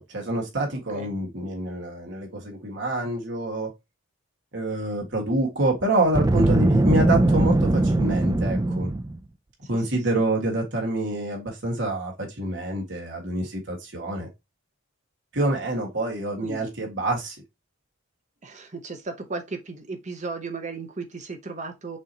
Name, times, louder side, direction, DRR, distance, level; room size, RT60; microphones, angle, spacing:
voice 1, 0.0-3.7 4.5-8.9 9.7-14.3 15.3-17.4, right 1 dB, 55° right, 1.7 m, -27 dB
voice 2, 0.7-1.1 9.6-9.8 10.1-10.2 16.4-16.7 18.4-22.0, right 3 dB, 35° right, 0.7 m, -35 dB
Boom, 6.1-9.2, right 2 dB, 15° right, 0.3 m, -21 dB
6.1 x 2.9 x 2.8 m
head